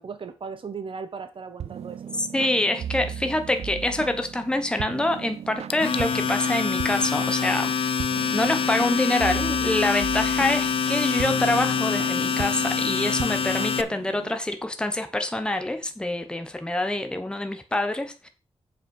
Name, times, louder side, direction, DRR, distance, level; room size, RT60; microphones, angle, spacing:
voice 1, 0.0-2.2, right 5 dB, 55° right, 8 dB, 1.1 m, -37 dB
sound 1, 1.6-14.4, right 9 dB, 90° right, 0.4 m, -37 dB
voice 2, 2.2-8.0 8.3-18.3, left 1 dB, 10° left, 7 dB, 0.9 m, -26 dB
Domestic sounds home sounds, 5.7-13.8, left 6 dB, 60° left, 0.6 m, -25 dB
7.3 x 5.5 x 5.4 m, 0.30 s
wide cardioid pair, 135°, 11 cm